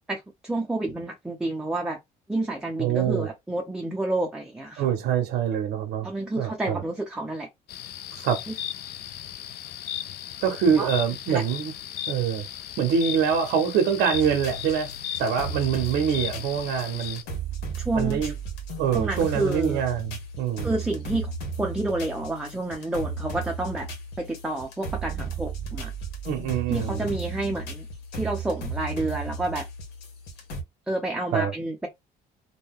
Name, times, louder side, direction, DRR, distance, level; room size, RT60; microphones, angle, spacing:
voice 1, 0.1-2.0 2.3-4.9 6.0-7.5 8.5-8.6 10.8-10.9 11.3-11.4 17.8-18.3 18.9-19.8 20.6-21.3 21.6-23.9 24.2-25.9 26.7-27.9 28.1-29.7 30.9-31.9, right 2 dB, 5° right, 0.6 m, -29 dB
voice 2, 2.8-3.3 4.8-6.1 6.4-6.8 8.2-8.4 10.4-11.7 12.1-12.5 12.8-14.9 15.2-17.2 18.0-18.3 18.8-20.7 26.2-27.1 31.3-31.5, right 7 dB, 85° right, 0.7 m, -25 dB
sound 1, 7.7-17.2, left 11 dB, 70° left, 0.4 m, -36 dB
sound 2, 14.1-30.6, right 4 dB, 90° left, 1.0 m, -35 dB
2.6 x 2.2 x 3.5 m
cardioid pair, 110°, 17 cm